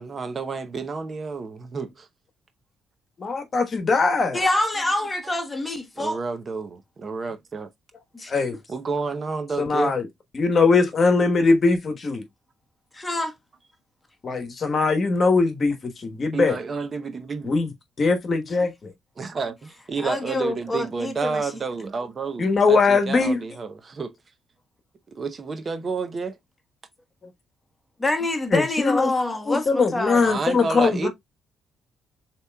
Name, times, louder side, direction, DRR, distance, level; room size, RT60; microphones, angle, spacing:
voice 1, 0.0-2.1 6.0-7.7 8.7-9.9 16.3-17.5 19.2-24.1 25.1-26.4 30.1-31.1, right 4 dB, 40° right, 0.7 m, -30 dB
voice 2, 3.2-4.4 8.3-8.6 9.6-10.1 10.3-12.2 14.2-16.6 17.4-17.7 18.0-18.9 22.4-23.4 28.5-29.1 29.5-31.1, left 4 dB, 45° left, 1.1 m, -21 dB
voice 3, 4.3-6.2 8.1-8.6 12.9-13.3 20.0-21.5 28.0-30.2, left 2 dB, 15° left, 1.1 m, -26 dB
6.6 x 3.0 x 2.2 m
cardioid pair, 90°, 0 cm